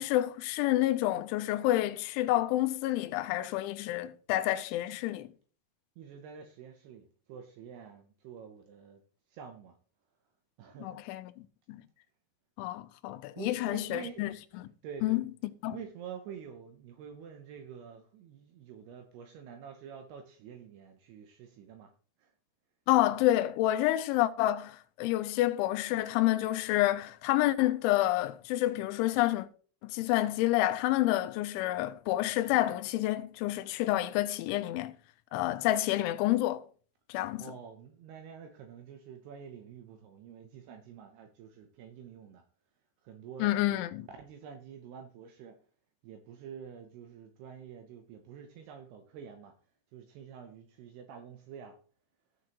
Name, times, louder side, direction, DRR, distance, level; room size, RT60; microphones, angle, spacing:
voice 1, 0.0-5.3 10.8-11.8 12.6-14.7 15.0-15.2 15.6-15.8 22.9-29.5 29.8-34.9 35.3-36.6 37.1-37.5 43.4-44.1, left 15 dB, 90° left, 3.0 m, -29 dB
voice 2, 6.0-9.0 9.3-9.8 10.6-11.0 13.4-14.3 14.8-15.3 15.7-21.9 22.2-22.3 37.4-42.4 43.0-43.8 44.2-45.6 46.0-49.5 49.9-51.8, right 7 dB, 80° right, 2.4 m, -47 dB
15.5 x 6.2 x 2.9 m
omnidirectional pair, 5.4 m